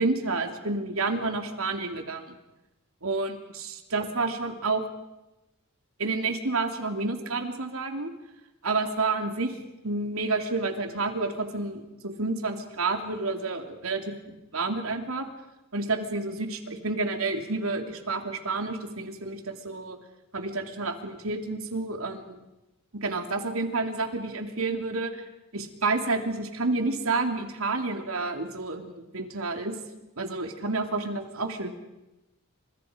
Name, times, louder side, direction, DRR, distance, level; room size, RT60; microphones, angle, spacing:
voice 1, 0.0-2.3 3.0-4.9 6.0-8.1 8.6-9.5 9.8-15.3 15.7-20.0 20.3-22.4 22.9-25.2 25.5-29.8 30.2-31.7, right 3 dB, 85° right, 5 dB, 3.0 m, -29 dB
29.5 x 27.0 x 5.2 m, 0.98 s
head